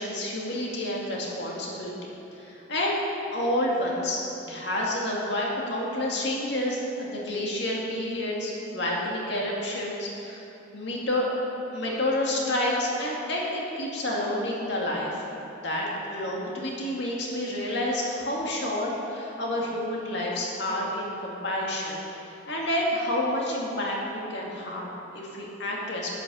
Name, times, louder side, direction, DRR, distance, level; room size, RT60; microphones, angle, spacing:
voice 1, 0.0-2.1 2.4-2.9 3.3-4.2 4.5-10.4 10.7-11.3 11.7-15.2 15.6-22.0 22.5-26.2, left 1 dB, 60° left, -3 dB, 2.3 m, -29 dB
10.5 x 8.8 x 6.3 m, 2.9 s
head